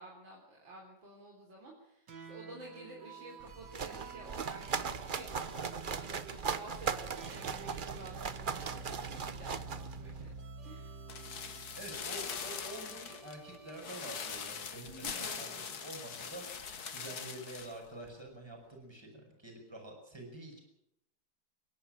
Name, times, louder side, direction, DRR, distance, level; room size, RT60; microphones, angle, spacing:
voice 1, 0.0-10.3 10.6-11.0 14.9-15.7, right 2 dB, 85° right, -1 dB, 4.4 m, -51 dB
sound 1, 2.1-14.6, right 4 dB, 65° right, 2.2 m, -50 dB
sound 2, 3.4-10.4, right 6 dB, 45° right, 0.7 m, -39 dB
sound 3, 11.1-17.8 18.0-18.1, left 6 dB, 55° left, 1.9 m, -42 dB
voice 2, 11.7-20.6, right 1 dB, 15° right, 1 dB, 5.5 m, -47 dB
28.0 x 11.0 x 8.9 m, 0.81 s
omnidirectional pair, 2.0 m